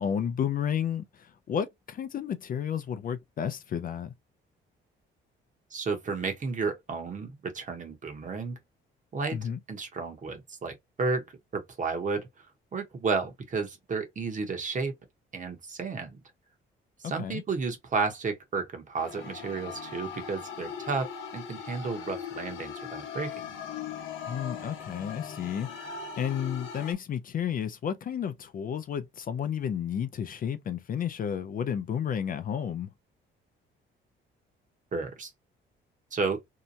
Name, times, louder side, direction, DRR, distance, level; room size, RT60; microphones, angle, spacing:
voice 1, 0.0-4.1 9.3-9.6 17.0-17.4 24.3-32.9, left 8 dB, 45° left, 0.4 m, -32 dB
voice 2, 5.7-8.6 9.1-11.2 11.5-12.5 12.7-14.9 15.3-16.2 17.0-23.5 34.9-35.3 36.1-36.4, right 4 dB, 40° right, 0.9 m, -32 dB
sound 1, 19.0-26.9, left 7 dB, 85° left, 0.8 m, -40 dB
2.8 x 2.1 x 2.6 m
cardioid pair, 90°, 20 cm